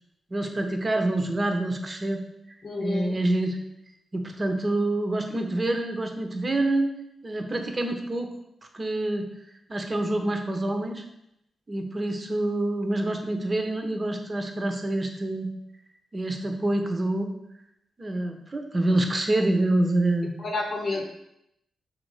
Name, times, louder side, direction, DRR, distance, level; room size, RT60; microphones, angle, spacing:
voice 1, 0.3-2.2 2.8-3.6 4.1-6.9 7.2-8.3 8.7-9.3 9.7-11.0 11.7-15.5 16.1-17.3 18.0-20.3, right 1 dB, 30° right, 4 dB, 0.9 m, -26 dB
voice 2, 2.6-3.2 20.4-21.0, left 2 dB, 50° left, 1 dB, 0.9 m, -29 dB
6.5 x 3.5 x 4.8 m, 0.82 s
cardioid pair, 80°, 0 cm